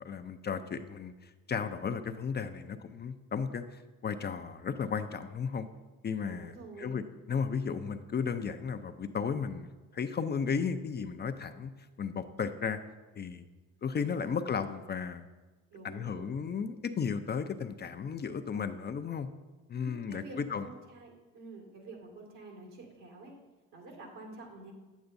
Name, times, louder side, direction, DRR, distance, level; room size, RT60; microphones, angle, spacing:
voice 1, 0.0-5.7 6.0-7.0 7.3-9.7 9.9-11.7 12.0-12.8 13.2-13.4 13.8-15.3 15.8-19.3 19.7-20.7, left 6 dB, 35° left, 9 dB, 0.5 m, -34 dB
voice 2, 6.3-7.0 15.7-16.3 19.7-23.3 23.7-24.7, right 2 dB, 75° right, 0 dB, 2.2 m, -48 dB
8.6 x 8.1 x 2.6 m, 1.2 s
supercardioid pair, 65°, 31 cm